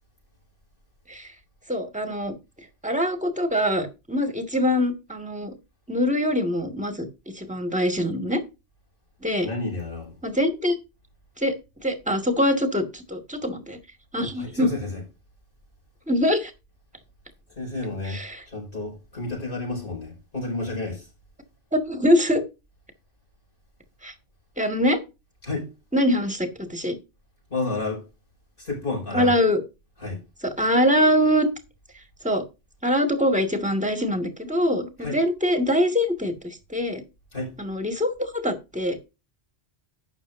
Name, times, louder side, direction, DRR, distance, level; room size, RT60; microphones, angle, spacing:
voice 1, 1.7-2.4 2.8-5.5 5.9-7.1 7.3-8.4 9.2-9.5 10.2-10.8 11.4-11.5 11.8-13.8 14.1-14.7 16.1-16.5 18.1-18.4 21.7-22.4 24.0-24.1 24.6-25.0 25.9-27.0 29.1-29.6 30.4-31.5 32.2-32.4 32.8-37.0 37.6-39.0, equal, 5° right, 1.9 m, -23 dB
voice 2, 9.4-10.2 14.2-15.0 17.5-21.1 25.4-25.7 27.5-28.1 28.6-29.3 30.0-30.2 35.0-35.2 37.3-37.6, left 2 dB, 55° left, 5.5 m, -31 dB
12.0 x 8.9 x 2.7 m
omnidirectional pair, 1.1 m